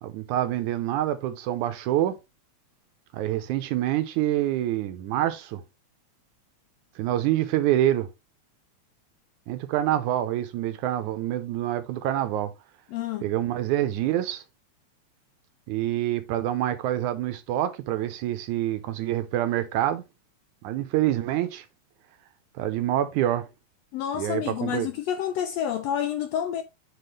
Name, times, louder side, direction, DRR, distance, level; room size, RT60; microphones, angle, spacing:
voice 1, 0.0-2.2 3.1-5.6 7.0-8.1 9.5-12.5 13.2-14.4 15.7-20.0 20.6-21.7 22.6-23.5 24.2-24.9, right 13 dB, 80° right, 2.2 m, -26 dB
voice 2, 12.9-13.3 23.9-26.6, left 10 dB, 80° left, 1.5 m, -29 dB
9.2 x 4.1 x 3.2 m
omnidirectional pair, 3.5 m